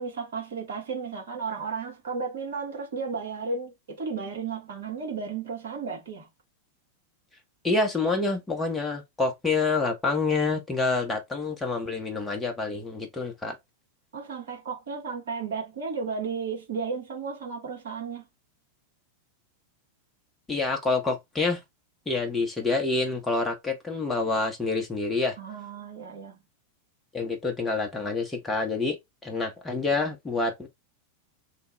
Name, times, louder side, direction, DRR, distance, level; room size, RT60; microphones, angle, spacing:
voice 1, 0.0-6.3 14.1-18.3 25.4-26.4, right 5 dB, 65° right, 1.5 m, -34 dB
voice 2, 7.6-13.6 20.5-21.6 22.1-25.4 27.1-29.0 29.2-30.7, left 3 dB, 10° left, 0.7 m, -27 dB
3.1 x 2.2 x 3.1 m
figure-of-eight pair, 90°, 0 cm